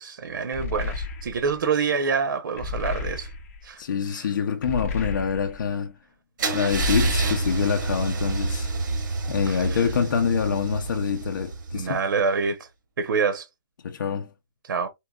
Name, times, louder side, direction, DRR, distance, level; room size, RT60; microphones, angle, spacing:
voice 1, 0.0-3.3 3.6-3.8 4.1-4.2 9.5-9.7 11.7-12.7 13.0-13.5 14.6-14.9, right 5 dB, 85° right, 0.8 m, -26 dB
sound 1, 0.5-1.6 2.6-3.7 4.6-5.7 6.7-7.8, left 4 dB, 45° left, 1.1 m, -33 dB
voice 2, 3.8-6.0 6.5-8.7 9.3-12.0 13.8-14.3, left 7 dB, 65° left, 0.6 m, -26 dB
Car / Engine starting / Idling, 6.4-12.2, right 3 dB, 65° right, 1.6 m, -28 dB
4.5 x 2.9 x 2.3 m
hypercardioid pair, 175°, 11 cm